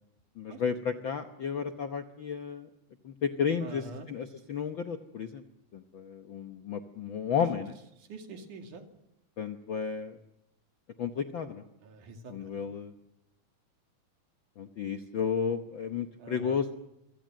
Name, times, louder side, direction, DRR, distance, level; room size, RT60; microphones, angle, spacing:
voice 1, 0.4-2.7 3.0-5.4 5.7-7.7 9.4-10.2 11.0-11.7 12.3-12.9 14.6-16.8, left 7 dB, 65° left, 7 dB, 1.2 m, -33 dB
voice 2, 3.6-4.1 7.4-7.5 8.1-8.9 11.8-12.7 16.2-16.5, right 3 dB, 75° right, 5 dB, 3.9 m, -44 dB
26.0 x 24.5 x 7.6 m, 0.87 s
omnidirectional pair, 3.6 m